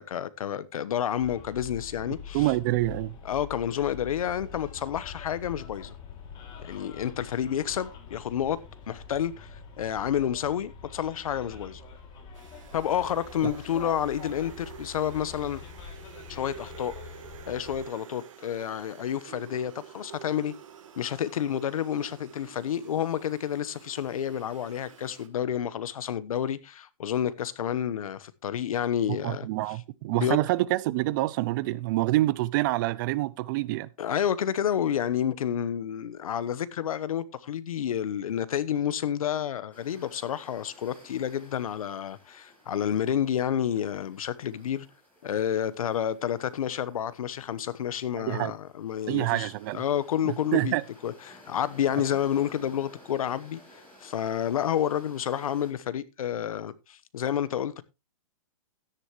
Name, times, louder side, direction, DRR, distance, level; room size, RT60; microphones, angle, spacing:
voice 1, 0.0-2.5 3.2-5.9 6.6-8.6 8.9-11.8 12.7-15.6 16.3-16.9 17.5-20.5 21.0-29.5 30.1-30.4 34.0-44.9 45.2-50.7 51.0-53.6 54.0-57.8, left 9 dB, 75° left, 1.1 m, -30 dB
Bus, 1.2-17.9, left 6 dB, 25° left, 2.6 m, -45 dB
voice 2, 2.3-3.1 29.1-33.9 48.2-48.5 49.1-49.8 50.2-50.8, right 17 dB, 35° right, 0.5 m, -27 dB
sound 1, 12.3-25.3, right 8 dB, 65° right, 2.9 m, -49 dB
sound 2, 39.7-55.7, left 1 dB, 10° left, 5.7 m, -55 dB
13.0 x 10.0 x 3.0 m
hypercardioid pair, 150°, 18 cm